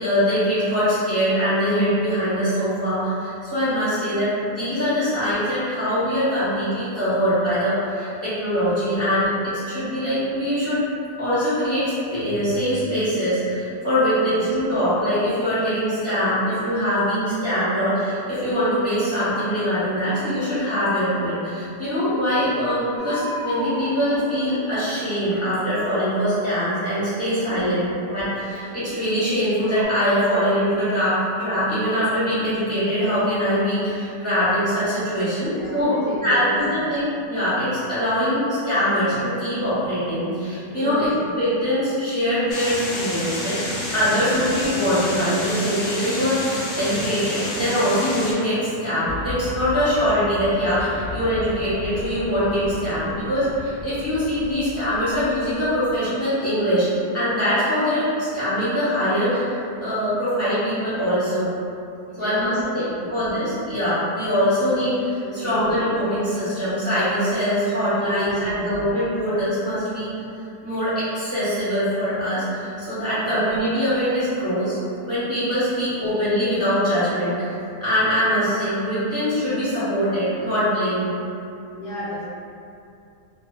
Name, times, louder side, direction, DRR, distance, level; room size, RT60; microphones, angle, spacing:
voice 1, 0.0-10.8 11.2-27.8 28.1-35.9 36.2-43.6 43.9-56.9 57.1-61.5 62.2-62.8 63.1-70.1 70.6-74.8 75.0-77.5 77.8-81.1, equal, 15° left, -14 dB, 0.7 m, -23 dB
voice 2, 14.1-14.4 22.6-22.7 23.8-23.9 27.5-28.0 35.6-36.8 40.7-41.2 62.1-63.1 65.2-65.8 68.0-68.8 73.2-73.4 81.7-82.2, equal, 50° left, -14 dB, 0.6 m, -33 dB
sound 1, 23.0-25.4 26.1-29.1 29.6-29.8, right 1 dB, 75° right, 1.1 m, -35 dB
sound 2, 42.5-48.3, left 2 dB, 85° left, 1.2 m, -29 dB
sound 3, 49.0-55.9, left 2 dB, 50° right, 0.6 m, -36 dB
2.9 x 2.2 x 2.2 m, 2.6 s
omnidirectional pair, 1.8 m